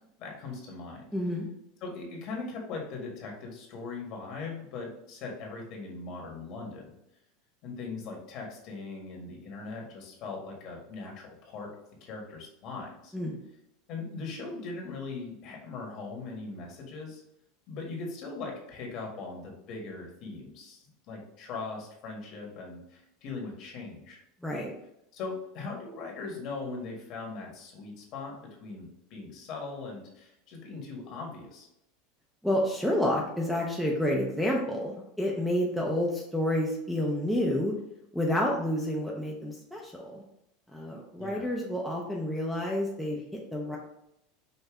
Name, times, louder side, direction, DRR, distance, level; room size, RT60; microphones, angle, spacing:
voice 1, 0.2-1.0 1.8-6.9 7.6-11.7 12.0-13.1 13.9-17.2 17.7-24.2 25.1-31.7 41.2-41.5, left 3 dB, 50° left, 0 dB, 1.5 m, -40 dB
voice 2, 1.1-1.5 13.1-13.4 24.4-24.7 32.4-37.7 38.1-40.2 40.7-43.8, left 1 dB, ahead, -3 dB, 0.7 m, -29 dB
5.5 x 2.6 x 3.5 m, 0.80 s
supercardioid pair, 140°, 0 cm